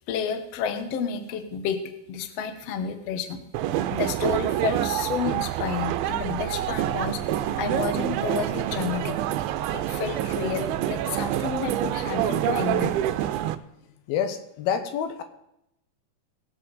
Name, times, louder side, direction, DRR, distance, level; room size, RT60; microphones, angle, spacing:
voice 1, 0.1-1.8 2.1-3.4 3.9-9.2 9.7-13.0, left 7 dB, 70° left, 8 dB, 1.5 m, -30 dB
sound 1, 3.5-13.6, right 12 dB, 90° right, 2.5 m, -27 dB
voice 2, 14.1-15.2, left 8 dB, 85° left, 8 dB, 2.9 m, -27 dB
20.0 x 7.7 x 4.1 m, 0.84 s
omnidirectional pair, 4.3 m